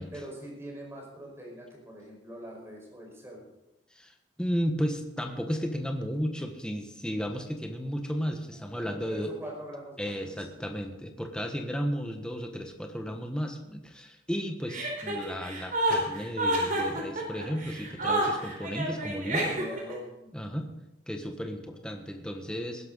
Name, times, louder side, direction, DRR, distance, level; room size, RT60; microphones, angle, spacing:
voice 1, 0.1-3.5 8.5-10.5 19.5-20.5, equal, 15° right, -1 dB, 5.2 m, -43 dB
voice 2, 3.9-9.3 10.0-19.6 20.3-20.7 21.1-22.9, equal, 5° left, 4 dB, 1.3 m, -34 dB
Chuckle chortle, 14.7-19.9, right 1 dB, 50° right, 4.1 m, -29 dB
20.0 x 11.5 x 4.0 m, 0.91 s
head